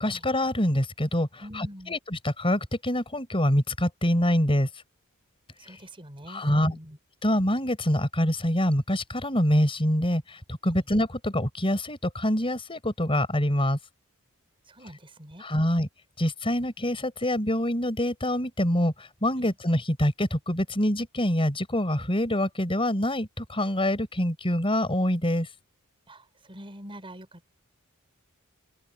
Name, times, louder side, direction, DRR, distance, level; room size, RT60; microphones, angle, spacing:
voice 1, 0.0-4.7 6.3-6.8 7.2-13.8 15.4-15.9 16.2-25.5, left 1 dB, 25° left, 5.2 m, -25 dB
voice 2, 1.4-1.9 5.6-7.0 10.7-10.8 14.7-15.5 19.4-19.5 26.1-27.5, equal, 25° right, 5.7 m, -44 dB
head